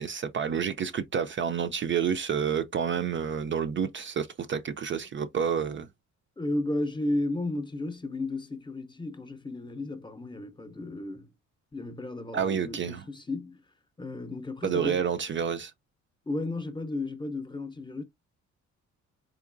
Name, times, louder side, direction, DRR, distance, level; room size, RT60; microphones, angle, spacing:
voice 1, 0.0-5.9 12.3-13.0 14.6-15.7, right 7 dB, 40° right, 0.4 m, -29 dB
voice 2, 6.4-11.3 11.7-13.6 14.0-15.0 16.3-18.0, left 2 dB, 15° left, 0.6 m, -33 dB
3.8 x 2.9 x 2.5 m
cardioid pair, 90°, 30 cm